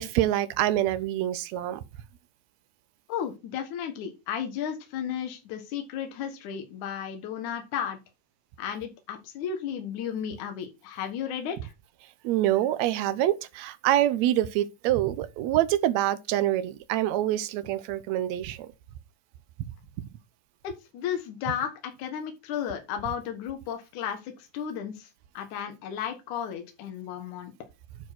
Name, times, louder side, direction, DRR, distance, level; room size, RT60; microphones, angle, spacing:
voice 1, 0.0-1.8 12.2-18.6, right 13 dB, 75° right, 1.7 m, -26 dB
voice 2, 3.1-8.0 8.6-11.7 20.6-25.1 25.3-27.5, left 8 dB, 70° left, 2.7 m, -34 dB
9.5 x 4.5 x 5.9 m
omnidirectional pair, 3.8 m